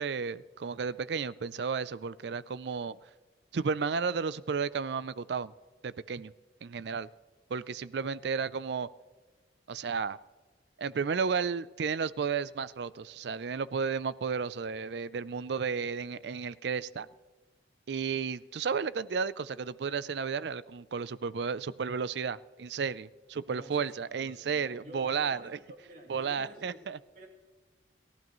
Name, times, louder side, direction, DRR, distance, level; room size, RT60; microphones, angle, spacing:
voice 1, 0.0-3.0 3.5-5.5 5.8-6.3 6.6-7.1 7.5-8.9 9.7-10.2 10.8-17.1 17.9-25.6 26.1-27.0, right 5 dB, 70° right, 17 dB, 0.4 m, -33 dB
voice 2, 23.5-26.8 27.1-27.3, equal, 45° right, 0 dB, 2.8 m, -51 dB
29.0 x 14.5 x 3.1 m, 1.3 s
head